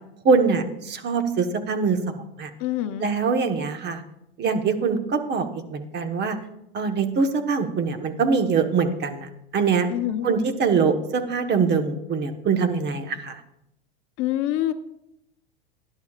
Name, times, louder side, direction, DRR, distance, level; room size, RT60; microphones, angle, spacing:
voice 1, 0.2-2.5 3.0-4.0 4.4-6.4 6.7-9.9 10.2-13.4, right 5 dB, 35° right, 6 dB, 1.4 m, -23 dB
voice 2, 2.6-3.1 9.9-10.3 14.2-14.7, left 13 dB, 45° left, 9 dB, 0.9 m, -25 dB
20.0 x 10.5 x 2.5 m, 0.82 s
hypercardioid pair, 100°, 30 cm